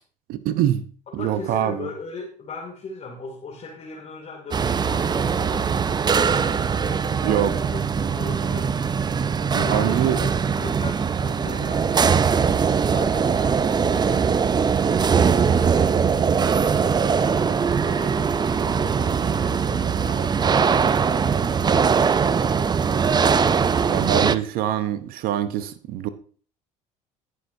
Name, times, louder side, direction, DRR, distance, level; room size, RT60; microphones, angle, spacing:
voice 1, 0.3-0.8 1.1-1.9 7.2-7.5 9.5-10.2 23.9-26.1, right 11 dB, 55° right, 13 dB, 0.8 m, -24 dB
voice 2, 1.1-8.9 9.5-12.4 12.9-14.3 15.4-16.5 17.1-22.1, left 3 dB, 40° left, -2 dB, 2.5 m, -38 dB
sound 1, 4.5-24.4, right 6 dB, 25° right, 0.5 m, -21 dB
Child speech kid speaking, 17.2-20.4, left 1 dB, 5° left, 2.2 m, -48 dB
18.5 x 6.5 x 2.7 m, 0.43 s
hypercardioid pair, 65°, 17 cm